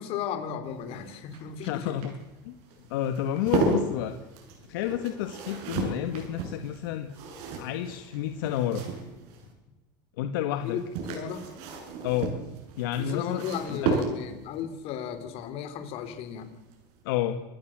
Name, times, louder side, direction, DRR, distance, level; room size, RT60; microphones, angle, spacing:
voice 1, 0.0-2.1 10.6-11.5 13.0-16.5, left 8 dB, 60° left, 9 dB, 4.0 m, -35 dB
sound 1, 0.7-9.5 10.6-14.5 16.2-16.5 16.7-16.8, right 4 dB, 70° right, 7.5 m, -34 dB
voice 2, 1.7-2.1 2.4-2.5 2.9-4.2 4.7-7.1 7.5-8.8 10.2-10.8 12.0-12.3 12.8-14.0 17.0-17.4, left 11 dB, 85° left, 8 dB, 1.6 m, -30 dB
27.0 x 16.0 x 7.6 m, 1.1 s
supercardioid pair, 110°, 11 cm